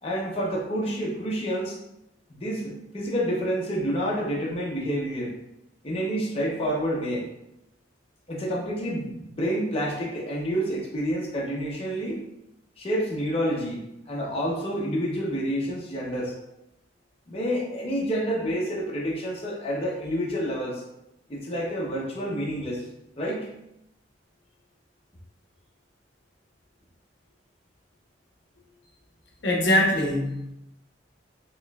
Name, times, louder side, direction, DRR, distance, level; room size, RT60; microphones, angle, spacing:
voice 1, 0.0-1.8 2.3-5.3 5.8-7.3 8.3-12.2 12.8-16.3 17.3-20.8 21.3-22.8 23.2-23.5, equal, 35° left, -4 dB, 0.7 m, -28 dB
voice 2, 29.4-30.5, left 1 dB, 75° left, -1 dB, 0.8 m, -22 dB
4.4 x 3.0 x 2.3 m, 0.85 s
head